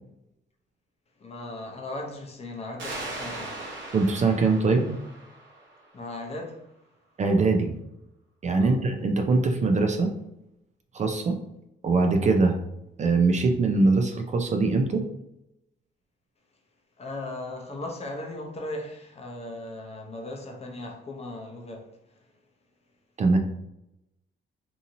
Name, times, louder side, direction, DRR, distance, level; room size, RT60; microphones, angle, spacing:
voice 1, 1.2-3.6 5.9-6.6 8.6-8.8 17.0-21.9, left 2 dB, 30° left, 0.6 m, -37 dB
sound 1, 2.8-6.2, right 2 dB, 70° right, 0.9 m, -39 dB
voice 2, 3.9-4.9 7.2-7.7 8.4-10.1 10.9-11.4 11.8-12.6 13.0-15.0 23.2-23.4, right 3 dB, 35° right, 0.4 m, -22 dB
2.7 x 2.7 x 2.6 m
cardioid pair, 90°, 20 cm